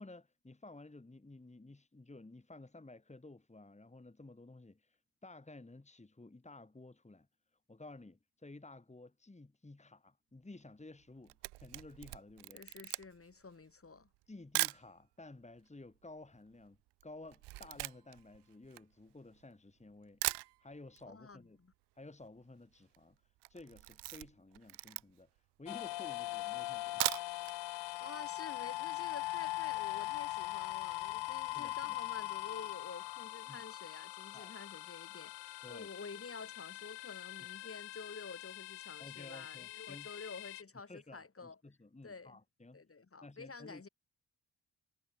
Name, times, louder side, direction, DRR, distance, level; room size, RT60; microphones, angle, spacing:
voice 1, 0.0-7.3 7.7-12.6 14.3-16.8 17.0-20.2 20.6-21.6 22.0-23.2 23.5-25.3 25.6-27.1 31.5-32.0 33.5-33.6 34.3-34.6 35.6-35.9 39.0-40.1 40.9-42.8 43.2-43.8, left 2 dB, 15° left, 2.3 m, -54 dB
Camera, 11.0-14.9 15.6-15.7 15.8-19.5 19.9-20.0 20.2-21.1 21.3-21.4 21.7-21.8 22.0-22.4 22.8-23.0 23.4-25.4 25.9-26.0 26.8-27.6 27.9-28.0 28.4-28.5, right 20 dB, 75° right, 0.5 m, -40 dB
voice 2, 12.5-14.1 21.1-21.7 28.0-41.6 42.0-42.4 42.7-43.9, left 4 dB, 30° left, 3.0 m, -50 dB
sound 1, 25.7-40.6, left 19 dB, 80° left, 1.2 m, -41 dB
supercardioid pair, 45°, 42 cm